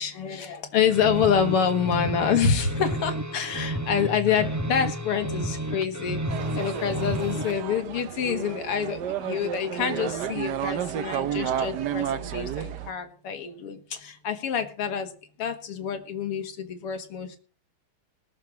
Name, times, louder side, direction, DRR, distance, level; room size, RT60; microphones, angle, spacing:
voice 1, 0.0-6.2 6.6-15.1 15.4-17.4, left 7 dB, 85° left, 8 dB, 2.7 m, -27 dB
sound 1, 0.9-7.6, right 1 dB, 25° right, 0.4 m, -31 dB
sound 2, 6.3-12.9, right 10 dB, 60° right, 1.2 m, -31 dB
18.5 x 6.9 x 6.2 m, 0.37 s
omnidirectional pair, 2.4 m